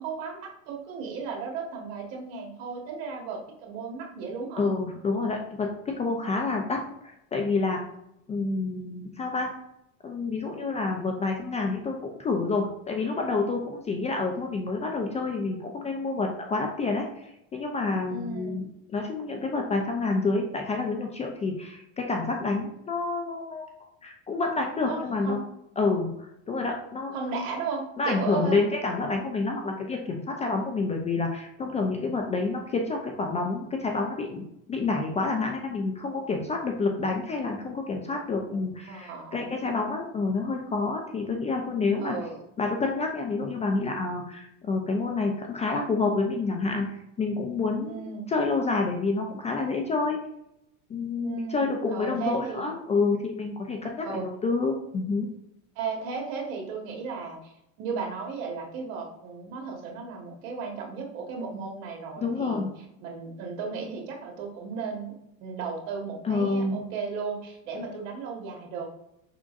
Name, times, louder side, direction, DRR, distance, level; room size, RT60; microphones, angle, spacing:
voice 1, 0.0-4.7 18.1-18.6 24.8-25.4 27.1-28.6 38.9-39.4 42.0-42.4 47.8-48.3 51.2-52.7 54.0-54.3 55.7-57.5 57.8-62.7 63.0-65.1 65.4-68.9, right 5 dB, 70° right, 1 dB, 1.4 m, -35 dB
voice 2, 4.6-7.8 8.3-9.5 10.0-18.7 18.9-23.7 24.0-25.4 25.8-26.1 26.5-27.2 28.0-42.2 42.6-46.9 47.2-48.0 48.3-50.2 50.9-55.3 62.2-62.7 66.2-66.8, left 3 dB, 20° left, 2 dB, 0.3 m, -28 dB
5.0 x 3.6 x 2.4 m, 0.82 s
supercardioid pair, 115°, 40 cm